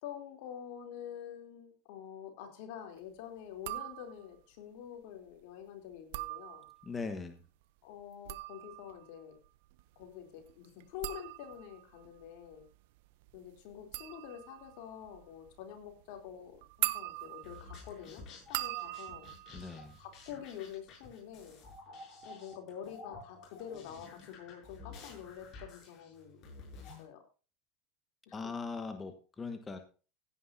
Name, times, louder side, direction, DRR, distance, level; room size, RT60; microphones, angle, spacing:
voice 1, 0.0-6.7 7.8-9.3 9.9-12.6 13.3-18.2 18.5-19.3 20.0-21.6 22.2-26.4 27.0-27.2 28.3-28.6, left 9 dB, 65° left, 4 dB, 3.3 m, -47 dB
sound 1, 3.5-4.4 5.9-7.0 8.0-20.7 21.0-21.5, right 20 dB, 70° right, 0.7 m, -42 dB
voice 2, 6.8-7.4 19.5-20.0 28.3-29.8, left 4 dB, 20° left, 7 dB, 1.5 m, -40 dB
sound 2, 17.4-27.0, left 3 dB, 45° left, 7.2 m, -52 dB
16.5 x 9.5 x 2.8 m, 0.34 s
hypercardioid pair, 100°, 0 cm